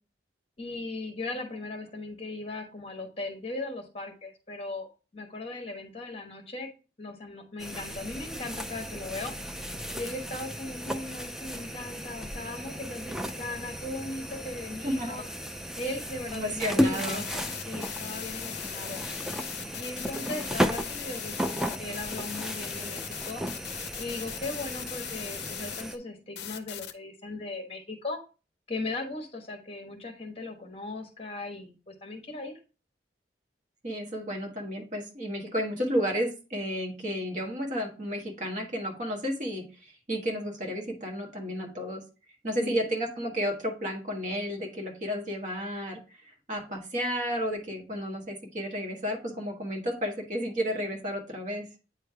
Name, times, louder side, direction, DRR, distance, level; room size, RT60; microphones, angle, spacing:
voice 1, 0.6-4.9 5.1-6.7 7.0-9.3 9.9-15.2 15.8-19.0 19.7-23.4 24.0-28.2 28.7-32.5 42.6-42.8, left 2 dB, 35° left, 4 dB, 1.2 m, -38 dB
sound 1, 7.6-26.0, equal, 5° right, 0.3 m, -34 dB
voice 2, 14.8-15.2 16.3-17.2 33.8-42.0 42.4-51.7, equal, 45° right, 2 dB, 1.3 m, -32 dB
sound 2, 16.9-25.8 26.4-26.9, left 10 dB, 65° left, 0.5 m, -39 dB
8.8 x 3.2 x 3.4 m, 0.33 s
head